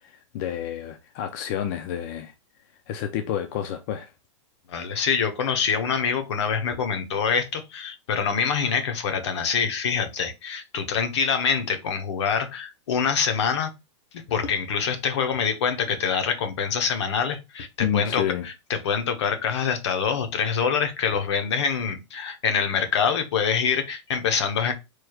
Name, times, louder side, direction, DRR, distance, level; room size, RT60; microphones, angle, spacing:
voice 1, 0.0-2.3 2.9-4.1 17.8-18.5, left 9 dB, 40° left, 0.5 m, -29 dB
voice 2, 4.7-13.7 14.3-24.7, left 6 dB, 65° left, 0.9 m, -25 dB
4.7 x 3.1 x 2.4 m
supercardioid pair, 155°, 16 cm